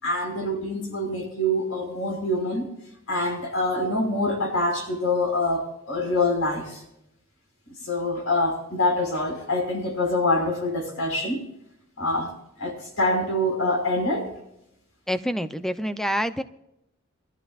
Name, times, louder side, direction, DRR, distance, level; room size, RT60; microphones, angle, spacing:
voice 1, 0.0-2.7 3.1-6.8 7.8-11.4 12.0-12.3 12.6-14.3, left 1 dB, 70° left, 2 dB, 5.6 m, -25 dB
voice 2, 15.1-16.4, equal, ahead, 11 dB, 0.6 m, -27 dB
24.0 x 14.0 x 2.5 m, 0.82 s
head